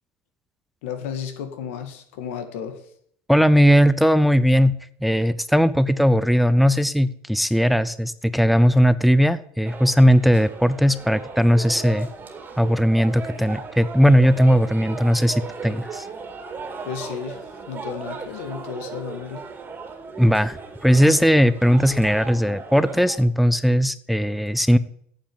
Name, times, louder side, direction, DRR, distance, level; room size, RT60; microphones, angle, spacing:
voice 1, 0.8-2.9 16.8-17.4 17.7-19.5, left 8 dB, 90° left, 7 dB, 2.0 m, -33 dB
voice 2, 3.3-4.7 5.0-12.1 12.6-16.1 20.2-24.8, equal, ahead, 15 dB, 0.5 m, -18 dB
sound 1, 9.6-23.2, right 5 dB, 30° right, 2.3 m, -36 dB
8.9 x 7.7 x 8.8 m, 0.66 s
supercardioid pair, 115°, 7 cm